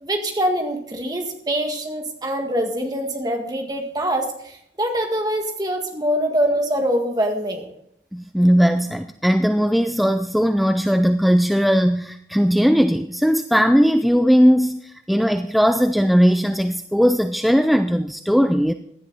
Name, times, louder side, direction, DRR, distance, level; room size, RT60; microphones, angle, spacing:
voice 1, 0.0-7.7, equal, 20° right, 3 dB, 1.8 m, -24 dB
voice 2, 8.1-18.7, equal, ahead, 8 dB, 0.4 m, -18 dB
16.5 x 11.0 x 4.0 m, 0.71 s
head